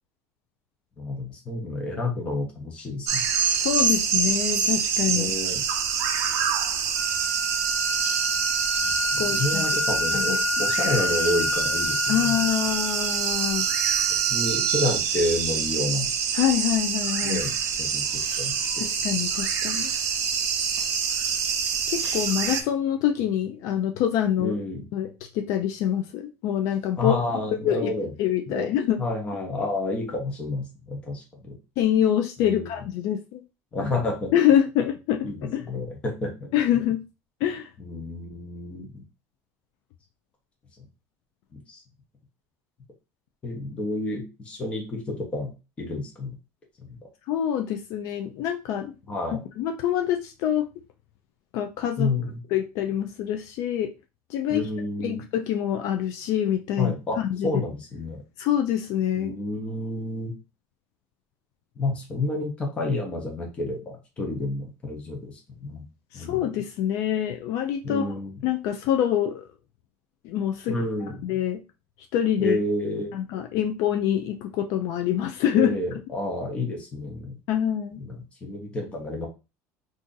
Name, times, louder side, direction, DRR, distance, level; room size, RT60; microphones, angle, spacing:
voice 1, 1.0-3.2 5.1-5.6 8.8-12.4 14.2-16.1 17.2-17.5 17.8-18.0 18.4-18.9 24.4-24.9 27.0-28.1 28.5-31.6 32.4-32.7 33.7-34.3 35.2-36.5 37.8-39.0 41.5-41.8 43.4-45.5 45.8-46.3 46.9-47.0 49.1-49.4 52.0-52.4 54.5-55.2 56.8-58.2 59.2-60.3 61.8-65.3 65.6-65.8 66.1-66.3 67.8-68.4 70.7-71.2 72.4-73.1 75.5-77.4 78.0-79.3, left 2 dB, 15° left, 0.7 m, -30 dB
sound 1, 3.1-22.6, right 7 dB, 45° right, 0.5 m, -26 dB
voice 2, 3.6-5.3 9.2-9.6 10.1-10.4 12.1-13.7 16.3-17.4 18.8-19.9 21.9-24.5 24.9-27.2 27.6-27.9 28.2-29.0 31.8-33.4 34.3-35.7 36.5-37.0 37.4-37.7 47.3-48.9 49.3-50.7 51.5-52.1 52.5-53.9 54.3-54.7 55.0-57.5 58.4-59.3 66.1-68.1 68.4-69.5 70.2-70.8 71.2-71.6 72.1-72.6 73.1-75.7 77.5-78.0, left 10 dB, 50° left, 0.3 m, -25 dB
sound 2, 6.9-15.0, left 3 dB, 30° right, 0.9 m, -29 dB
2.6 x 2.4 x 3.8 m
cardioid pair, 175°, 7 cm